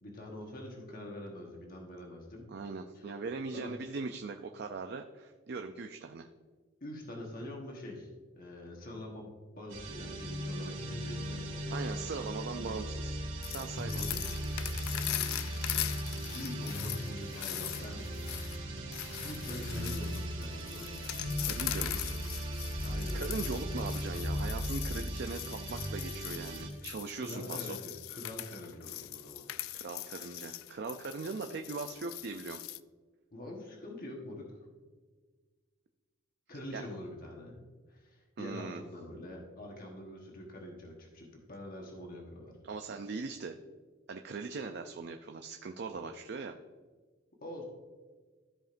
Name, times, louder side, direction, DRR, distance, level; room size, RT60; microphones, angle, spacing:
voice 1, 0.0-2.5 2.9-3.0 3.5-3.7 6.8-8.1 8.3-9.3 9.6-11.7 13.9-14.2 16.3-18.0 18.3-18.6 19.2-21.3 22.8-23.4 26.8-26.9 27.2-29.7 33.3-34.5 36.5-37.6 37.9-42.5 47.4-47.6, left 1 dB, 45° left, 0 dB, 1.3 m, -45 dB
voice 2, 2.5-6.3 11.7-14.1 21.5-22.2 22.8-22.9 23.1-27.8 29.7-32.6 36.7-36.8 38.4-38.8 42.6-43.6 44.1-46.5, right 4 dB, 50° right, 6 dB, 0.4 m, -40 dB
sound 1, 9.7-26.7, equal, 70° right, 1.8 m, -37 dB
sound 2, 13.4-32.8, left 15 dB, 85° left, 0.3 m, -41 dB
13.5 x 5.0 x 2.6 m, 1.4 s
head